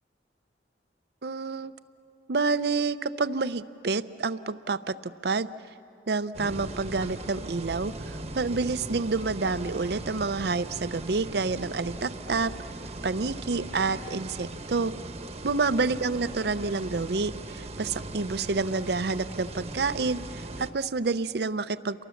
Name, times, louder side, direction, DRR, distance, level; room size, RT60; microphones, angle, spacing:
voice 1, 1.2-1.7 2.3-5.5 6.1-12.5 13.0-14.9 15.4-22.0, right 4 dB, 60° right, 14 dB, 0.6 m, -28 dB
sound 1, 6.3-20.7, right 2 dB, 35° right, 1.1 m, -39 dB
30.0 x 23.5 x 7.1 m, 2.8 s
head